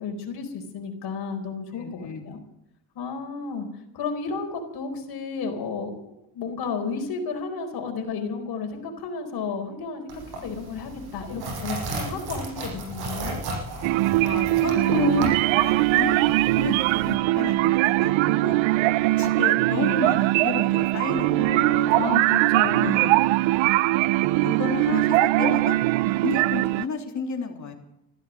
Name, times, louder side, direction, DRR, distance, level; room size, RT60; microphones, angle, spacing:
voice 1, 0.0-2.4 2.9-3.7 3.9-13.4 21.3-23.0, left 5 dB, 55° left, 4 dB, 4.4 m, -32 dB
voice 2, 1.8-2.2 14.2-18.6 19.2-21.9 22.8-23.2 24.4-25.8 26.2-27.7, left 5 dB, 40° left, 2 dB, 3.3 m, -31 dB
sound 1, 10.1-17.1, right 2 dB, 55° right, 7.6 m, -35 dB
sound 2, 13.8-26.9, right 18 dB, 80° right, 0.6 m, -21 dB
15.0 x 12.5 x 7.5 m, 0.81 s
cardioid pair, 120°, 45 cm